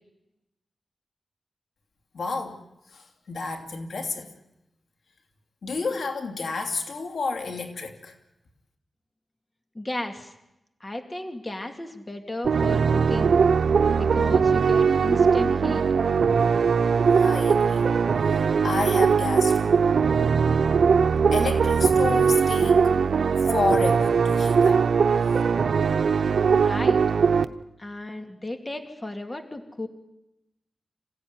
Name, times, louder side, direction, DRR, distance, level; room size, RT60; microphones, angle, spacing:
voice 1, 2.1-2.6 2.9-4.3 5.6-8.2 17.1-17.9 18.3-19.8 21.3-23.1 23.4-24.8, left 4 dB, 85° left, 4 dB, 2.8 m, -30 dB
voice 2, 9.7-10.3 10.8-13.3 13.9-15.9 26.5-27.0 27.8-29.9, left 1 dB, 25° left, 5 dB, 2.4 m, -34 dB
sound 1, 12.4-27.4, right 6 dB, 90° right, 0.8 m, -20 dB
27.0 x 16.0 x 9.6 m, 0.90 s
wide cardioid pair, 115°, 0 cm